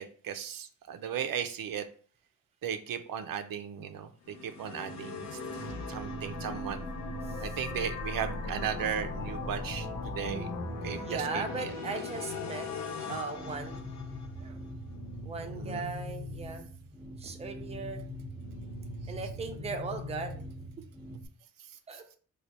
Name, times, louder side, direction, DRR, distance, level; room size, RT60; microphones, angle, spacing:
voice 1, 0.0-1.9 2.6-5.4 5.9-6.9 7.4-10.5 10.8-11.7 15.5-15.9, right 8 dB, 85° right, 8 dB, 0.5 m, -36 dB
sound 1, 4.2-14.5, left 3 dB, 55° left, 0.8 m, -38 dB
voice 2, 10.8-13.9 14.4-14.6 15.2-16.7 17.2-18.0 19.1-20.5 21.9-22.0, right 4 dB, 20° right, 4 dB, 0.4 m, -38 dB
sound 2, 13.3-21.3, left 1 dB, 5° left, 0.9 m, -42 dB
3.2 x 2.3 x 4.0 m, 0.42 s
wide cardioid pair, 140°, 33 cm